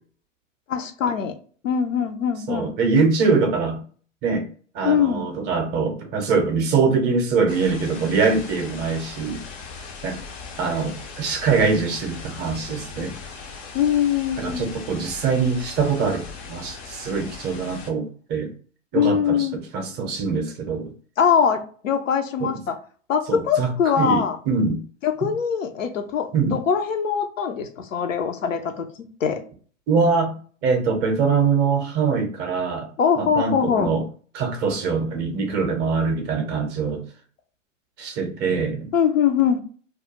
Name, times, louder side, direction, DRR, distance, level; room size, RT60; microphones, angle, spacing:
voice 1, 0.7-1.3 1.6-2.7 4.8-5.3 13.7-14.7 18.9-19.6 21.2-22.8 23.1-24.4 25.0-28.9 29.2-29.4 33.0-33.9 38.9-39.6, left 7 dB, 85° left, 7 dB, 0.6 m, -22 dB
voice 2, 2.5-3.8 4.2-4.5 4.7-9.4 10.0-10.2 10.6-13.1 14.4-18.5 18.9-20.9 22.4-22.5 23.3-23.7 24.0-24.8 26.3-26.6 29.9-30.4 30.6-32.9 33.2-34.0 34.3-37.0 38.0-38.9, right 4 dB, 25° right, 4 dB, 0.5 m, -23 dB
sound 1, 7.5-17.9, left 4 dB, 30° left, 0.4 m, -39 dB
2.3 x 2.0 x 2.8 m, 0.43 s
hypercardioid pair, 105°, 38 cm